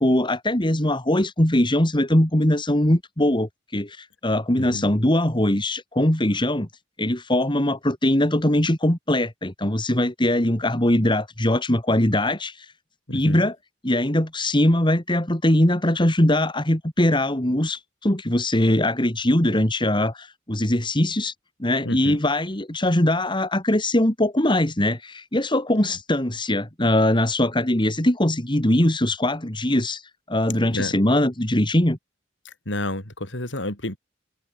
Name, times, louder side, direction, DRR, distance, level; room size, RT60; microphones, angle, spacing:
voice 1, 0.0-6.7 7.0-12.7 13.1-13.5 13.8-21.3 21.6-30.0 30.3-32.0, left 1 dB, 25° left, 2.8 m, -21 dB
voice 2, 4.6-4.9 13.1-13.5 21.8-22.2 30.7-31.0 32.4-34.0, left 1 dB, 70° left, 7.2 m, -30 dB
head